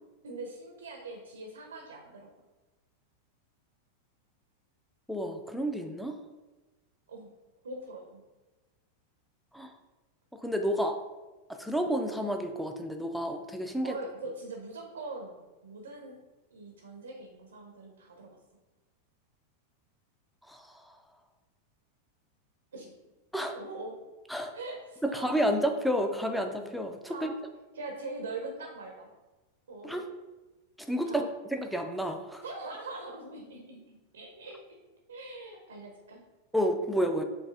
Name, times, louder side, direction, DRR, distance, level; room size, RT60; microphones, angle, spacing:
voice 1, 0.2-2.3 7.1-7.3 7.6-8.2 13.8-16.2 16.5-18.4 22.7-22.9 23.5-24.0 24.5-25.4 27.1-27.4 27.7-29.1 29.7-30.0 31.0-31.3 32.4-34.6 35.1-36.2, right 2 dB, 70° right, 2 dB, 0.6 m, -42 dB
voice 2, 5.1-6.2 9.5-9.7 10.4-11.0 11.6-13.9 20.5-20.6 23.3-23.6 24.3-24.5 25.0-27.3 29.8-30.0 30.9-32.4 36.5-37.2, equal, ahead, 4 dB, 0.5 m, -30 dB
7.1 x 2.6 x 2.4 m, 1.2 s
figure-of-eight pair, 90°, 0 cm